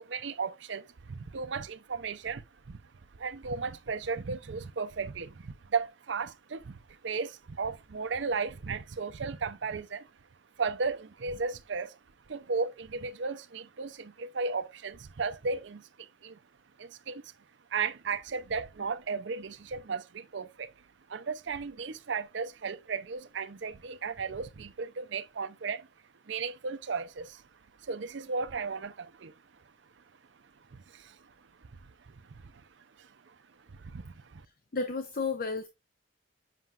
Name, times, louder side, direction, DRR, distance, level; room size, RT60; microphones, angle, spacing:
voice 1, 0.0-2.8 3.1-10.1 10.6-12.0 12.3-16.4 16.8-17.3 17.7-25.9 26.3-27.5 27.8-29.3 30.0-30.1 30.7-33.4 33.7-34.5, right 4 dB, 70° right, 0.6 m, -35 dB
voice 2, 34.7-35.7, left 4 dB, 45° left, 0.6 m, -32 dB
7.6 x 5.7 x 2.4 m
head